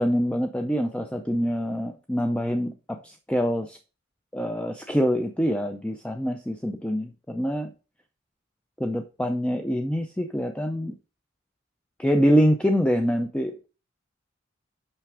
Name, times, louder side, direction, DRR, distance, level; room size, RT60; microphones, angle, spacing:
voice 1, 0.0-3.8 4.3-7.7 8.8-10.9 12.0-13.7, equal, 5° left, 5 dB, 0.4 m, -25 dB
5.9 x 5.7 x 4.7 m, 0.34 s
head